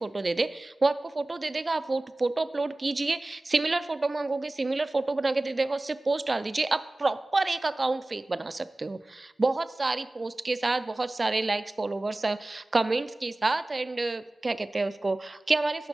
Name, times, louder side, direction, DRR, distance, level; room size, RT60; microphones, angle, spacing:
voice 1, 0.0-15.9, right 3 dB, 40° right, 14 dB, 0.3 m, -28 dB
6.9 x 6.2 x 4.0 m, 1.1 s
cardioid pair, 55°, 0 cm